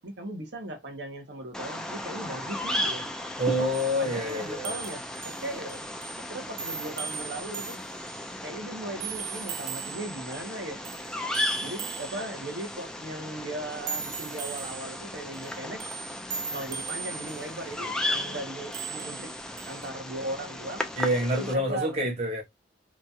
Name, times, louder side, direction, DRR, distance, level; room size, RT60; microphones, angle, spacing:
voice 1, 0.0-3.0 3.6-3.7 4.0-5.9 6.3-7.8 8.4-10.9 11.6-15.8 16.5-19.3 19.7-20.9 21.3-22.0, right 1 dB, 65° right, 0.9 m, -38 dB
Bird vocalization bird call bird song, 1.5-21.5, left 1 dB, 5° left, 0.3 m, -36 dB
voice 2, 3.4-4.8 21.0-22.4, equal, 35° right, 1.1 m, -27 dB
sound 1, 3.7-8.5 9.0-10.6 10.9-12.8 13.7-18.2 18.7-19.9, right 6 dB, 85° right, 0.6 m, -39 dB
2.9 x 2.3 x 2.6 m
head